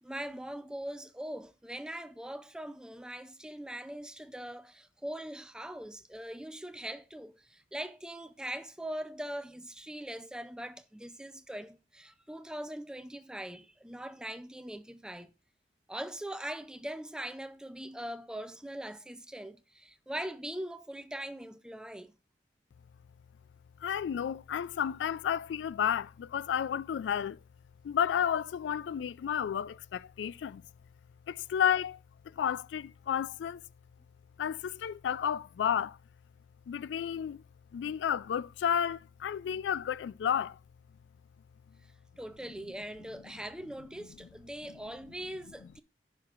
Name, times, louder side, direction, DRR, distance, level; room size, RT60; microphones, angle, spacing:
voice 1, 0.0-15.3 15.9-22.1 42.2-45.8, right 1 dB, 5° right, 0.4 m, -41 dB
voice 2, 23.8-26.1 26.3-27.3 27.9-29.7 30.2-30.5 31.5-31.9 32.4-33.6 34.4-35.9 36.7-37.4 37.7-40.5, left 8 dB, 85° left, 0.3 m, -31 dB
16.0 x 5.8 x 2.4 m
head